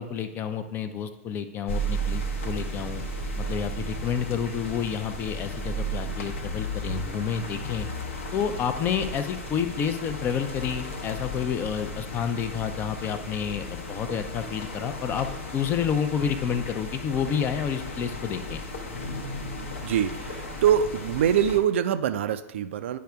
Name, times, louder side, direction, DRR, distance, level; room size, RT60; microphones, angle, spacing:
voice 1, 0.0-3.0 3.4-7.9 8.3-18.6, left 7 dB, 25° left, 10 dB, 0.4 m, -29 dB
sound 1, 1.7-21.6, equal, 65° left, 0.8 m, -34 dB
voice 2, 19.8-23.0, right 9 dB, 55° right, 11 dB, 0.3 m, -24 dB
10.0 x 4.8 x 2.2 m, 0.96 s
figure-of-eight pair, 100°, 8 cm